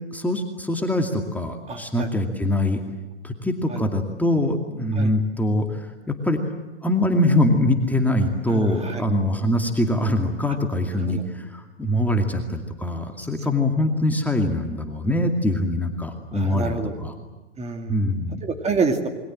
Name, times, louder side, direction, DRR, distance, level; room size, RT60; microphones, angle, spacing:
voice 1, 0.1-2.8 3.2-5.9 6.2-6.4 6.8-17.1 17.9-18.4, left 1 dB, 5° left, 3 dB, 2.4 m, -23 dB
voice 2, 1.7-2.1 3.7-3.8 4.9-5.1 8.5-9.0 10.9-11.2 16.3-16.9 17.6-18.0 18.4-19.1, right 4 dB, 20° right, 5 dB, 2.7 m, -27 dB
27.5 x 23.0 x 7.7 m, 1.2 s
hypercardioid pair, 115°, 35 cm